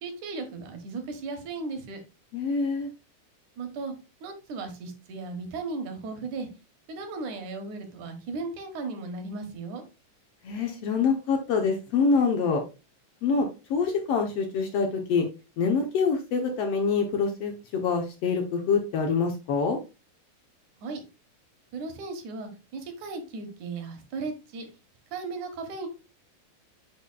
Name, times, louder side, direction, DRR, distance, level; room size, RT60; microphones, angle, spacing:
voice 1, 0.0-2.0 3.6-3.9 4.2-6.5 6.9-9.8 20.8-21.0 21.7-24.7 25.1-25.9, right 3 dB, 75° right, 6 dB, 2.7 m, -36 dB
voice 2, 2.3-2.9 10.4-12.6 13.2-15.3 15.6-19.8, left 5 dB, 65° left, 4 dB, 1.6 m, -25 dB
6.9 x 6.5 x 2.2 m, 0.29 s
omnidirectional pair, 3.5 m